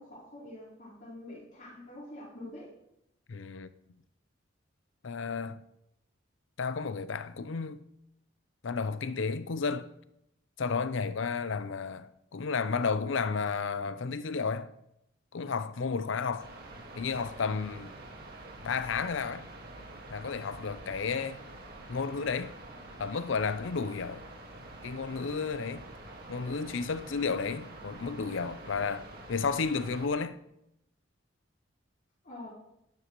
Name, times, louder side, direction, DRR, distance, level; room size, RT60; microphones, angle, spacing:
voice 1, 0.0-2.8 32.2-32.5, left 1 dB, 40° left, 3.9 m, -46 dB
voice 2, 3.3-3.7 5.0-5.6 6.6-7.8 8.6-9.9 10.6-14.7 15.3-16.5 16.9-17.9 18.6-19.5 20.1-21.4 21.9-22.6 23.0-24.2 24.8-25.9 26.3-30.4, left 5 dB, 75° left, 0.6 m, -32 dB
sound 1, 16.4-30.1, right 2 dB, 50° right, 1.8 m, -47 dB
12.0 x 10.5 x 3.1 m
head